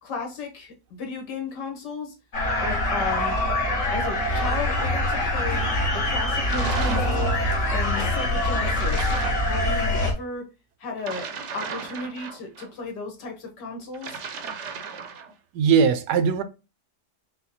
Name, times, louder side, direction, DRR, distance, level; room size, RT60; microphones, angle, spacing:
voice 1, 0.0-2.1 2.6-3.3 3.9-5.7 6.1-7.4 7.7-9.1 9.4-10.5 10.8-14.2, left 3 dB, 80° left, 1.9 m, -34 dB
sound 1, 2.3-10.1, left 1 dB, 50° left, 1.7 m, -24 dB
sound 2, 6.5-7.2 8.8-9.5 11.0-12.7 13.9-15.3, right 6 dB, 55° right, 0.9 m, -35 dB
voice 2, 15.5-16.4, right 6 dB, 75° right, 1.1 m, -19 dB
5.5 x 2.3 x 4.1 m
omnidirectional pair, 1.8 m